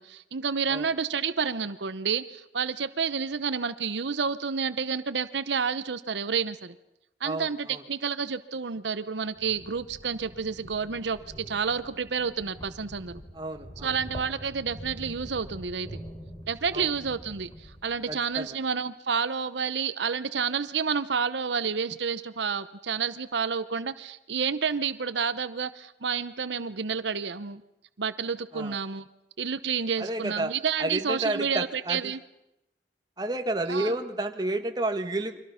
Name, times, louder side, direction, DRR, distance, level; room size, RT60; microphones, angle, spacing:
voice 1, 0.0-6.7 7.2-11.2 11.5-13.2 13.8-16.0 16.5-27.6 28.0-29.1 29.4-32.2 33.7-33.9, right 6 dB, 85° right, 13 dB, 0.8 m, -30 dB
voice 2, 7.2-7.8 13.3-14.0 16.7-16.9 18.1-18.5 28.5-28.8 30.0-30.5 30.8-32.1 33.2-35.4, right 2 dB, 25° right, 6 dB, 1.5 m, -31 dB
sound 1, 9.2-18.5, equal, 20° left, 3.3 m, -45 dB
30.0 x 24.0 x 5.8 m, 0.87 s
head